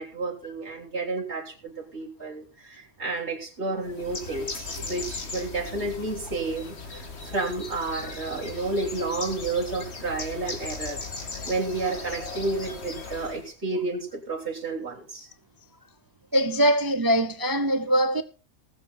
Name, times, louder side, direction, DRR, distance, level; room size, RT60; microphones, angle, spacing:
voice 1, 0.0-11.0 11.4-15.3, right 3 dB, 50° right, 3.8 m, -31 dB
Bird, 3.8-13.5, left 3 dB, 50° left, 2.1 m, -38 dB
voice 2, 16.3-18.2, equal, 30° right, 0.4 m, -22 dB
19.0 x 7.4 x 4.1 m
omnidirectional pair, 1.5 m